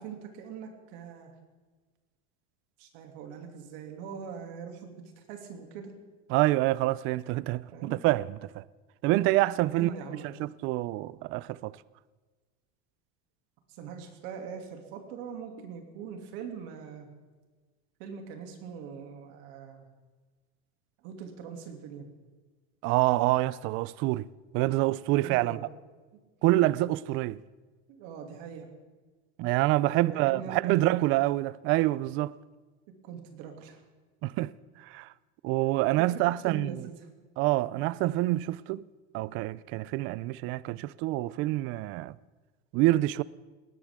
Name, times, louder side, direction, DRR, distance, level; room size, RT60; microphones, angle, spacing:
voice 1, 0.0-1.3 2.8-5.9 7.7-8.0 9.7-10.3 13.7-17.1 18.0-19.9 21.0-22.1 25.2-25.6 27.9-28.7 29.8-30.5 30.9-31.2 33.0-33.8 36.0-36.1 36.4-36.9, right 6 dB, 65° right, 2.6 m, -42 dB
voice 2, 6.3-7.7 8.0-8.3 8.5-8.6 9.0-9.9 10.4-11.8 22.8-24.3 24.5-25.6 26.4-27.4 29.4-32.3 34.2-34.5 34.9-35.1 35.4-36.7 37.4-38.9 39.1-42.1 42.7-43.2, right 18 dB, 45° right, 0.4 m, -26 dB
20.0 x 18.0 x 3.6 m
supercardioid pair, 150°, 31 cm